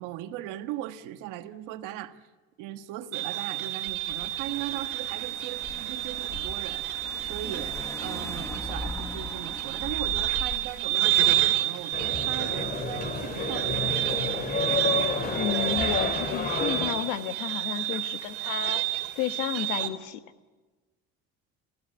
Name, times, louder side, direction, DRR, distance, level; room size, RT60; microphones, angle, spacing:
voice 1, 0.0-2.2 2.6-6.8 7.2-14.5, right 13 dB, 80° right, 8 dB, 1.5 m, -38 dB
sound 1, 3.1-19.9, right 15 dB, 50° right, 2.7 m, -30 dB
Car / Engine, 3.9-10.8, left 2 dB, 10° left, 1.3 m, -40 dB
sound 2, 11.9-16.9, left 4 dB, 30° left, 2.7 m, -30 dB
voice 2, 15.3-18.8 19.1-20.2, left 11 dB, 75° left, 10 dB, 1.5 m, -32 dB
27.0 x 16.0 x 9.0 m, 1.3 s
cardioid pair, 175°, 31 cm